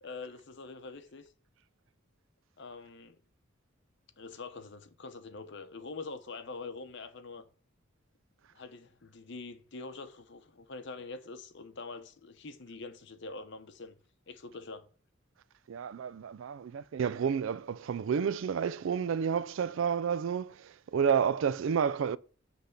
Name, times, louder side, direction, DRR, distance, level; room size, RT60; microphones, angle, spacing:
voice 1, 0.0-1.3 2.6-3.2 4.2-7.4 8.5-14.0 14.3-14.9, left 3 dB, 60° left, 0.8 m, -44 dB
voice 2, 15.7-22.2, right 7 dB, 70° right, 0.3 m, -30 dB
8.0 x 3.4 x 6.5 m
head